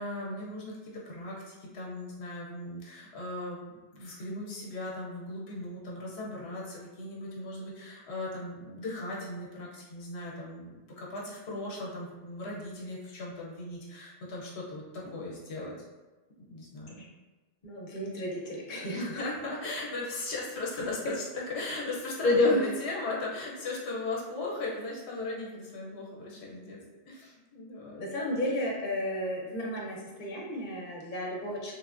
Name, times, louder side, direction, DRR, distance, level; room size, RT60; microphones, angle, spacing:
voice 1, 0.0-3.6 3.9-15.7 16.5-17.0 18.9-26.8 27.1-28.0, left 2 dB, 90° left, -4 dB, 1.0 m, -38 dB
voice 2, 17.6-19.2 22.2-22.7 28.0-31.7, left 2 dB, 55° left, -3 dB, 0.7 m, -30 dB
3.1 x 2.1 x 2.4 m, 1.2 s
omnidirectional pair, 1.1 m